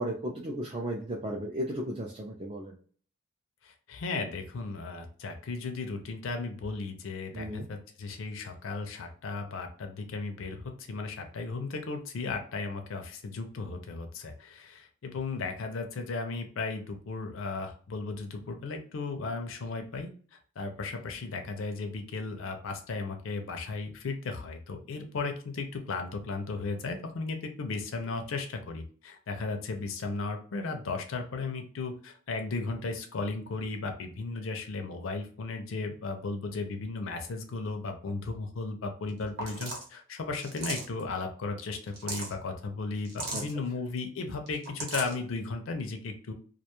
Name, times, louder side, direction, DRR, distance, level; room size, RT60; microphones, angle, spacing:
voice 1, 0.0-2.8 7.3-7.7 43.3-43.4, right 1 dB, 25° right, -1 dB, 0.4 m, -35 dB
voice 2, 3.6-46.3, left 3 dB, 75° left, 4 dB, 0.4 m, -35 dB
sound 1, 39.1-39.2 39.4-39.9 40.4-41.0 41.8-42.3 43.1-43.5 44.5-45.1, right 2 dB, 50° right, 0.8 m, -36 dB
2.4 x 2.2 x 2.9 m, 0.43 s
head